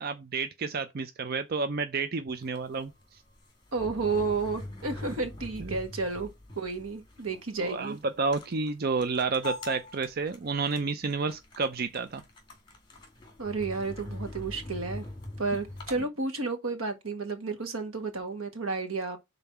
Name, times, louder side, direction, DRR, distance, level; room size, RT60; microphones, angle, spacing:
voice 1, 0.0-2.9 5.6-5.8 7.6-12.2, right 4 dB, 50° right, 0.5 m, -30 dB
sound 1, 2.3-16.0, left 2 dB, 20° left, 2.1 m, -43 dB
voice 2, 3.7-6.3 6.5-8.0 13.4-15.1 15.4-19.2, right 4 dB, 90° right, 1.6 m, -32 dB
5.3 x 4.0 x 5.9 m
head